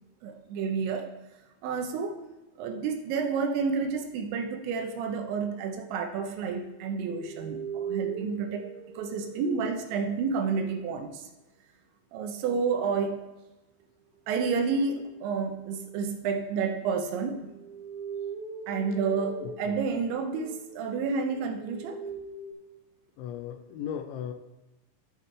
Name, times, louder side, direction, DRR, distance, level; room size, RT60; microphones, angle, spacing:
voice 1, 0.2-1.1 1.6-2.2 2.6-8.7 9.0-11.3 12.1-13.2 14.3-17.4 18.7-22.0, right 5 dB, 80° right, 5 dB, 3.0 m, -30 dB
sound 1, 6.5-10.6 14.7-16.1 17.0-22.5, right 5 dB, 30° right, 2.1 m, -41 dB
voice 2, 19.4-19.8 23.2-24.3, left 9 dB, 80° left, 8 dB, 3.0 m, -37 dB
14.0 x 7.0 x 3.3 m, 1.1 s
omnidirectional pair, 5.5 m